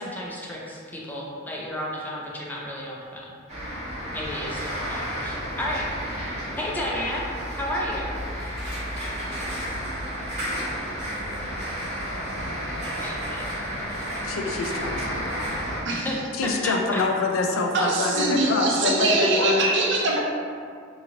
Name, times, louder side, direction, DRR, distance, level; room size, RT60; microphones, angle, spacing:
voice 1, 0.0-3.3 4.1-5.8 6.6-7.3 7.5-8.1 12.8-13.8 15.9-16.2 16.4-17.0, left 1 dB, 10° left, -4 dB, 0.4 m, -32 dB
sound 1, 3.5-15.8, equal, 35° right, 1.1 m, -31 dB
voice 2, 14.2-15.5 16.4-19.6, left 3 dB, 80° left, 2 dB, 0.3 m, -26 dB
voice 3, 17.7-20.2, right 2 dB, 60° right, -2 dB, 0.5 m, -23 dB
2.9 x 2.5 x 2.7 m, 2.2 s
head